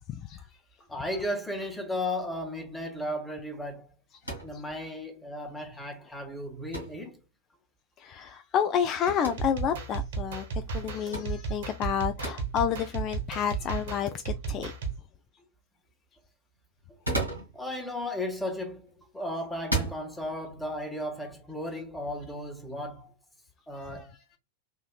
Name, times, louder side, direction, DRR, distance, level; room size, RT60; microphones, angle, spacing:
voice 1, 0.1-0.4 4.3-4.4 8.0-14.7 23.7-24.0, left 8 dB, 35° left, 0.3 m, -30 dB
voice 2, 0.9-3.9 4.4-7.2 16.9-17.0 17.5-23.1 23.7-24.4, left 1 dB, 5° left, 1.2 m, -35 dB
sound 1, 4.2-4.6 6.7-7.0 9.1-9.4 11.1-11.4 12.2-12.4 13.4-13.5 16.8-17.5 18.7-19.0 19.6-20.0, right 2 dB, 90° right, 2.0 m, -32 dB
sound 2, 9.3-15.0, right 5 dB, 60° right, 1.2 m, -34 dB
4.4 x 2.8 x 2.3 m
figure-of-eight pair, 90°, 0 cm